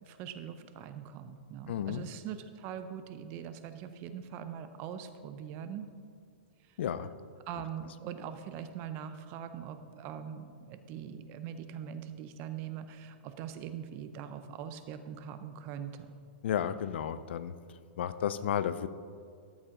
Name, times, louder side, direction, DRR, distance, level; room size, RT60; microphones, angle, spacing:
voice 1, 0.0-5.8 7.5-16.2, right 8 dB, 35° right, 10 dB, 0.6 m, -42 dB
voice 2, 1.7-2.0 6.8-7.1 16.4-17.5 18.0-18.9, left 9 dB, 70° left, 14 dB, 0.5 m, -32 dB
13.0 x 7.4 x 3.8 m, 2.2 s
hypercardioid pair, 155°, 6 cm